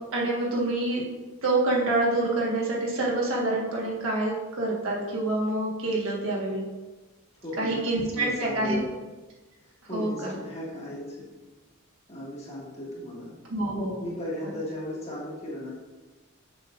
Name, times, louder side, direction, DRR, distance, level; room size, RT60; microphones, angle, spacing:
voice 1, 0.1-1.0 1.4-6.6 7.6-8.8 9.9-10.4 13.5-14.0 14.4-14.5, right 2 dB, 65° right, -3 dB, 1.5 m, -27 dB
voice 2, 7.4-7.9 8.1-8.9 9.6-11.3 12.1-13.3 14.0-15.7, left 1 dB, 30° left, -6 dB, 1.9 m, -36 dB
6.8 x 6.6 x 2.5 m, 1.2 s
head